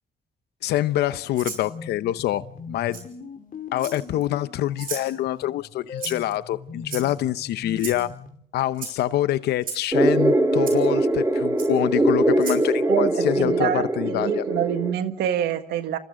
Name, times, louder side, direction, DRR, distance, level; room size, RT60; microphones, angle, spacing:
voice 1, 0.6-3.0 3.7-8.1 8.5-14.4, left 13 dB, 85° left, 15 dB, 0.8 m, -25 dB
Rattle (instrument), 1.3-1.6 2.9-3.0 3.8-4.2 4.8-5.1 6.0-6.3 6.9-7.3 7.8-8.0 8.7-8.9 9.6-9.8 10.7-10.8 11.6-11.7 12.4-12.6, right 5 dB, 60° right, 6.7 m, -34 dB
sound 1, 1.5-8.4, left 6 dB, 60° left, 3.6 m, -40 dB
sound 2, 9.9-14.9, right 1 dB, 20° right, 3.9 m, -22 dB
voice 2, 12.9-16.0, right 10 dB, 90° right, 9 dB, 1.6 m, -26 dB
29.0 x 28.5 x 3.8 m, 0.66 s
cardioid pair, 70°, 16 cm